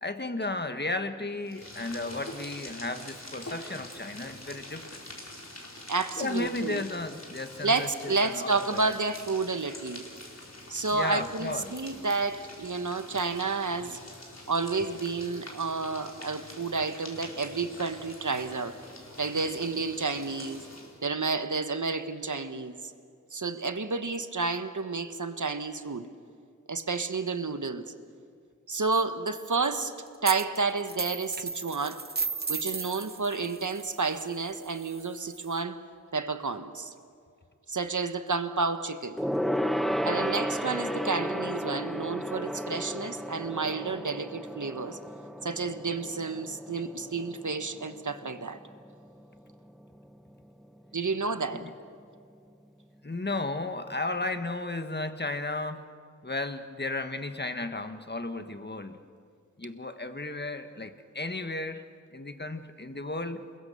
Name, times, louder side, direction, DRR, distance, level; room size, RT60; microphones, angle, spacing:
voice 1, 0.0-5.0 6.2-8.9 10.9-11.7 51.5-51.7 53.0-55.9 56.2-59.0 59.6-61.8 62.1-63.4, left 2 dB, 35° left, 8 dB, 1.5 m, -34 dB
sound 1, 1.4-21.0, left 1 dB, 55° left, 4.5 m, -46 dB
voice 2, 5.9-6.8 7.6-10.0 10.7-14.0 14.5-18.8 19.2-20.6 21.0-22.8 23.3-26.1 26.7-27.8 28.7-29.9 30.2-32.0 32.5-35.8 36.1-36.9 37.7-39.2 40.0-45.0 45.4-48.6 50.9-51.6, right 4 dB, 70° right, 9 dB, 1.4 m, -30 dB
sound 2, 30.2-30.6 30.8-35.6, right 4 dB, 30° right, 0.6 m, -36 dB
Gong, 39.2-48.9 49.2-49.5 49.8-49.9, equal, ahead, 1.0 m, -33 dB
28.5 x 21.5 x 6.9 m, 2.3 s
wide cardioid pair, 45°, 31 cm